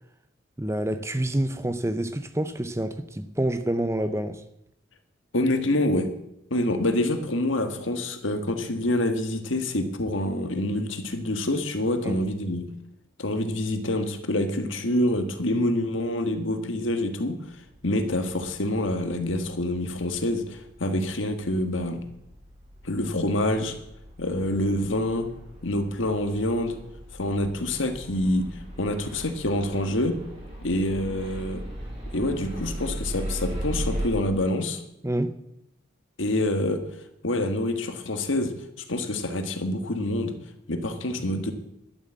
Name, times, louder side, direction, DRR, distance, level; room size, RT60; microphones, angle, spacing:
voice 1, 0.6-4.4 12.0-12.2 35.0-35.3, right 1 dB, 15° right, 0.6 m, -27 dB
voice 2, 5.3-6.1 6.5-12.7 13.2-17.4 17.8-22.0 22.8-23.7 24.2-25.3 25.6-26.8 27.1-30.2 30.6-31.6 32.1-34.8 36.2-36.8 37.2-38.5 38.9-40.3 40.7-41.5, left 1 dB, 75° left, 1.6 m, -26 dB
sound 1, 17.5-34.1, equal, 30° right, 3.6 m, -38 dB
12.0 x 7.9 x 7.5 m
head